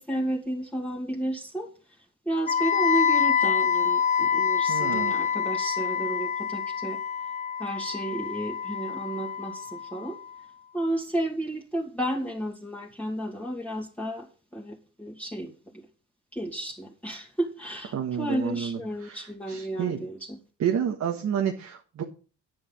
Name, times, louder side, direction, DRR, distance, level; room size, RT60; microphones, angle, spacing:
voice 1, 0.0-1.7 2.3-7.0 7.6-10.2 10.7-15.8 16.3-20.4, right 1 dB, 5° left, -3 dB, 2.5 m, -32 dB
Wind instrument woodwind instrument, 2.5-10.4, left 7 dB, 25° left, 0.6 m, -26 dB
voice 2, 4.7-5.3 17.9-20.0 20.6-22.0, right 8 dB, 65° right, 2 dB, 1.6 m, -30 dB
9.8 x 8.9 x 5.5 m, 0.36 s
cardioid pair, 90°, 30 cm